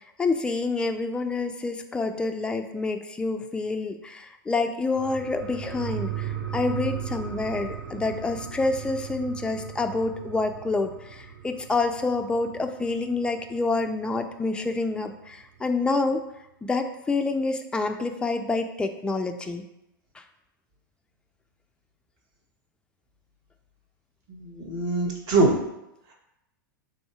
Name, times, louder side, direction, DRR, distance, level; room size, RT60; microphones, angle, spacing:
voice 1, 0.2-16.2 16.6-19.7 20.2-20.3, left 3 dB, 10° left, 6 dB, 0.3 m, -27 dB
sound 1, 4.9-14.0 14.3-14.4, right 8 dB, 70° right, 0.7 m, -37 dB
voice 2, 24.3-25.6, right 2 dB, 40° right, -2 dB, 1.2 m, -23 dB
3.6 x 2.6 x 4.5 m, 0.87 s
hypercardioid pair, 100°, 11 cm